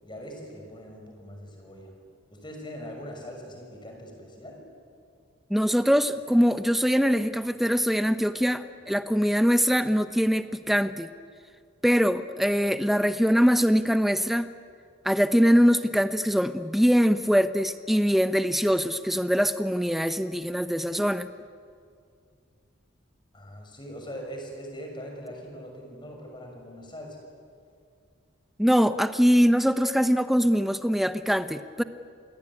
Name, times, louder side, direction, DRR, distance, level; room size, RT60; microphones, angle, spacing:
voice 1, 0.0-1.9 2.3-4.6 23.3-27.2, equal, 25° left, 2 dB, 6.2 m, -41 dB
voice 2, 5.5-11.1 11.8-14.5 15.0-21.3 28.6-31.8, equal, ahead, 10 dB, 0.9 m, -23 dB
27.5 x 21.0 x 9.9 m, 2.2 s
head